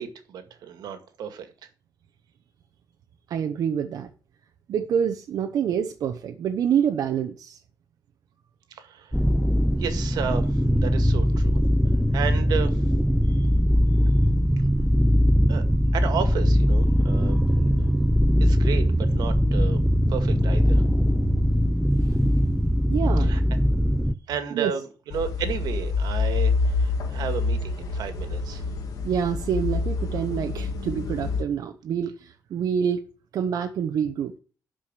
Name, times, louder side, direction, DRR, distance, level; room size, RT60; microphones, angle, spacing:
voice 1, 0.0-1.5 8.7-9.1 9.8-11.6 12.1-12.8 13.3-13.4 15.5-15.6 15.9-17.4 18.4-19.8 20.1-20.8 23.2-23.4 24.3-28.6, right 8 dB, 85° right, 2.0 m, -32 dB
voice 2, 3.3-4.1 4.7-7.6 22.0-22.2 22.9-23.3 24.5-24.7 29.0-33.0 33.3-34.4, right 8 dB, 65° right, 1.0 m, -27 dB
sound 1, 9.1-24.1, equal, ahead, 0.4 m, -21 dB
sound 2, 25.1-31.4, left 4 dB, 65° left, 2.4 m, -27 dB
12.0 x 5.2 x 7.3 m
cardioid pair, 160°, 7 cm